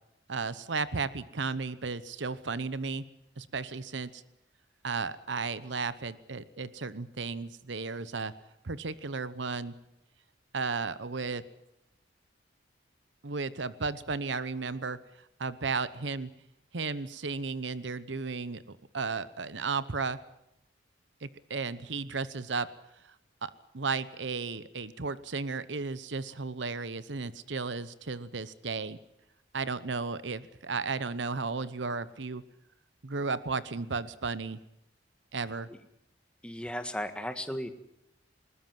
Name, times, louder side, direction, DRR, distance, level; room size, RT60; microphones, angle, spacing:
voice 1, 0.3-3.0 3.4-4.2 4.8-8.3 8.6-9.7 10.5-11.4 13.2-15.0 15.4-16.3 16.7-20.2 21.2-22.7 23.0-23.1 23.4-29.0 29.5-32.4 33.0-34.6 35.3-35.7, right 4 dB, 80° right, 16 dB, 0.9 m, -34 dB
voice 2, 36.4-37.7, equal, 5° left, 8 dB, 1.6 m, -35 dB
20.5 x 20.0 x 7.6 m, 0.81 s
head